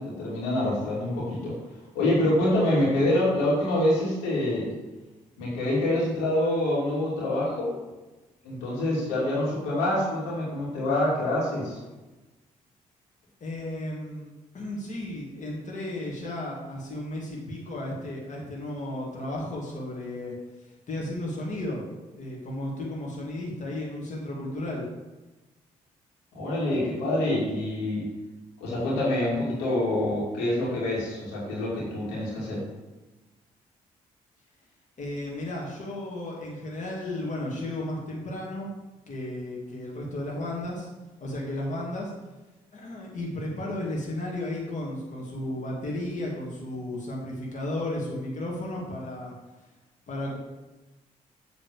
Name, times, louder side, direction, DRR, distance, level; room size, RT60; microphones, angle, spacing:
voice 1, 0.0-1.5 1.9-4.7 5.4-7.7 8.4-11.8 26.3-28.0 28.6-32.6, left 1 dB, 85° left, -6 dB, 2.9 m, -26 dB
voice 2, 13.4-20.3 20.6-21.8 22.1-24.9 35.0-38.7 39.1-40.9 41.2-42.1 42.7-49.3 50.1-50.4, left 1 dB, 45° left, -3 dB, 2.2 m, -34 dB
7.9 x 4.1 x 6.8 m, 1.1 s
hypercardioid pair, 45°, 16 cm